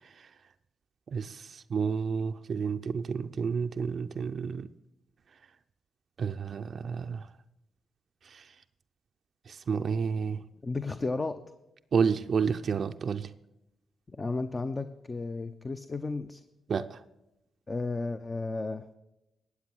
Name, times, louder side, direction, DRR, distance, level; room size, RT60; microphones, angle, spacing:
voice 1, 1.1-4.7 6.2-7.3 8.3-8.4 9.5-10.4 11.9-13.3 16.7-17.0, right 6 dB, 60° right, 0.5 m, -30 dB
voice 2, 10.6-11.4 14.1-16.4 17.7-18.9, left 3 dB, 35° left, 0.7 m, -33 dB
13.0 x 8.5 x 6.2 m
supercardioid pair, 45°, 0 cm